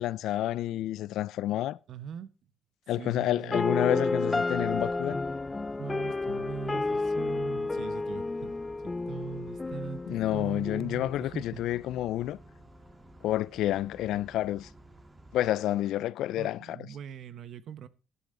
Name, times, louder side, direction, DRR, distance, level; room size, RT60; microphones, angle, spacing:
voice 1, 0.0-1.8 2.9-5.2 10.1-12.4 13.2-14.7 15.3-16.8, left 13 dB, 85° left, 0.5 m, -29 dB
voice 2, 1.9-2.3 3.0-3.5 5.8-11.6 16.4-17.9, right 8 dB, 70° right, 1.1 m, -41 dB
sound 1, 3.5-11.5, left 3 dB, 20° left, 0.6 m, -31 dB
sound 2, 4.5-15.5, right 2 dB, 20° right, 2.2 m, -53 dB
12.0 x 11.5 x 3.9 m
cardioid pair, 90°, 0 cm